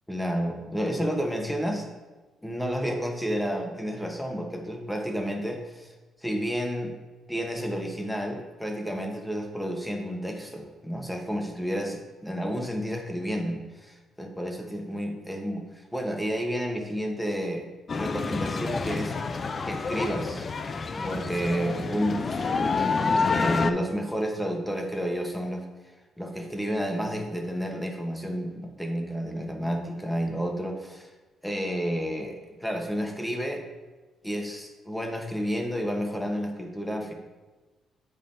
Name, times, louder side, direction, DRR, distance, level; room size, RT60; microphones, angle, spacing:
voice 1, 0.1-1.9 2.4-5.9 6.2-7.0 7.3-17.7 17.9-20.5 21.0-22.9 23.3-25.6 26.2-31.1 31.4-33.6 34.2-37.1, equal, 5° left, 3 dB, 1.0 m, -31 dB
sound 1, 17.9-23.7, left 4 dB, 40° left, 0.4 m, -28 dB
8.4 x 5.4 x 2.6 m, 1.2 s
cardioid pair, 90°, 0 cm